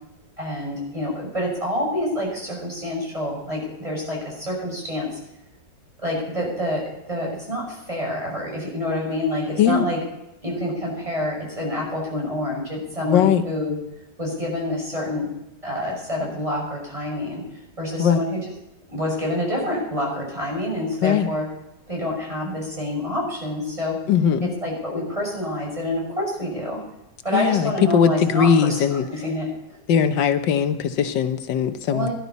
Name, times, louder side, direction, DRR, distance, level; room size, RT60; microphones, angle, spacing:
voice 1, 0.4-5.2 6.0-10.0 10.4-13.8 14.2-15.3 15.6-17.4 17.8-18.4 18.9-21.5 21.9-24.0 24.4-26.8 27.2-29.8 31.9-32.1, left 1 dB, 20° right, -2 dB, 5.9 m, -27 dB
voice 2, 13.1-13.4 18.0-18.2 21.0-21.3 24.1-24.5 27.3-29.0 29.9-32.1, left 8 dB, 90° left, 9 dB, 1.6 m, -19 dB
18.0 x 11.5 x 4.1 m, 0.91 s
omnidirectional pair, 1.9 m